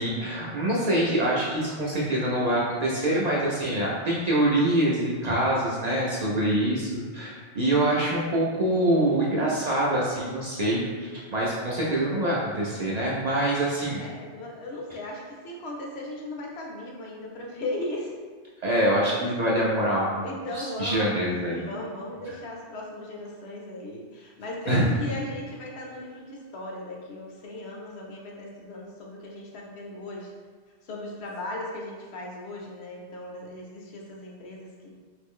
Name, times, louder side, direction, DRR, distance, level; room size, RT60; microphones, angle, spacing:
voice 1, 0.0-14.0 18.6-20.3 20.5-21.6 24.7-24.9, right 1 dB, 50° right, -5 dB, 0.5 m, -25 dB
voice 2, 14.0-18.1 20.2-30.3 30.8-35.0, left 1 dB, 70° left, -1 dB, 0.9 m, -37 dB
3.0 x 2.5 x 3.6 m, 1.5 s
omnidirectional pair, 1.2 m